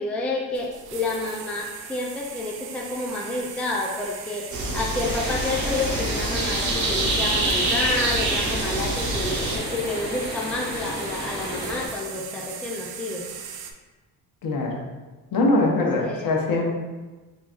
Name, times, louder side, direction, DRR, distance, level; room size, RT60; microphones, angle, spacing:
voice 1, 0.0-13.2 15.6-16.4, left 2 dB, 5° left, -2 dB, 0.4 m, -30 dB
sound 1, 0.5-13.7, right 7 dB, 65° right, 0.5 m, -38 dB
sound 2, 4.5-9.6, right 2 dB, 45° right, 1.0 m, -26 dB
sound 3, 5.0-11.9, left 2 dB, 25° left, 0.9 m, -33 dB
voice 2, 14.4-14.7 15.3-16.7, left 2 dB, 60° left, -1 dB, 0.9 m, -22 dB
3.9 x 3.5 x 2.4 m, 1.2 s
cardioid pair, 105°, 40 cm